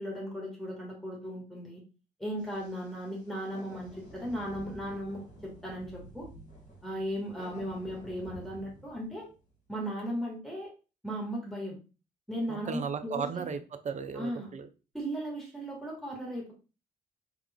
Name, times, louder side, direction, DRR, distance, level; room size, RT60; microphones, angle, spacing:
voice 1, 0.0-1.8 2.2-6.3 6.8-9.3 9.7-10.7 11.0-11.8 12.3-13.4 14.1-14.5 14.9-16.5, equal, ahead, -3 dB, 1.7 m, -36 dB
sound 1, 2.4-9.5, equal, 35° left, 1.7 m, -51 dB
voice 2, 12.5-14.7, right 6 dB, 35° right, 9 dB, 0.5 m, -36 dB
3.6 x 3.3 x 2.3 m, 0.32 s
figure-of-eight pair, 40°, 21 cm